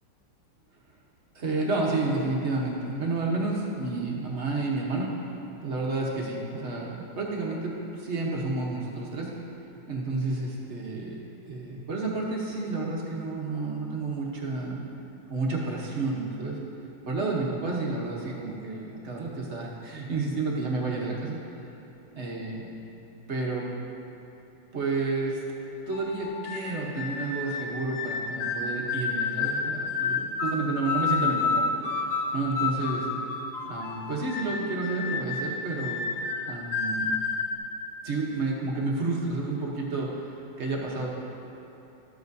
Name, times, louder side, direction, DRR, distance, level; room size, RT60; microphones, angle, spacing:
voice 1, 1.3-5.1 5.6-9.3 9.6-11.2 11.5-14.8 15.3-16.6 17.0-21.4 22.1-22.6 23.3-23.7 24.7-25.4 25.9-33.1 33.6-36.0 36.4-37.1 38.0-41.1, right 3 dB, 45° right, -3 dB, 1.0 m, -30 dB
sound 1, 25.9-37.5, left 4 dB, 75° left, 0.7 m, -30 dB
12.5 x 7.8 x 2.6 m, 2.9 s
omnidirectional pair, 2.0 m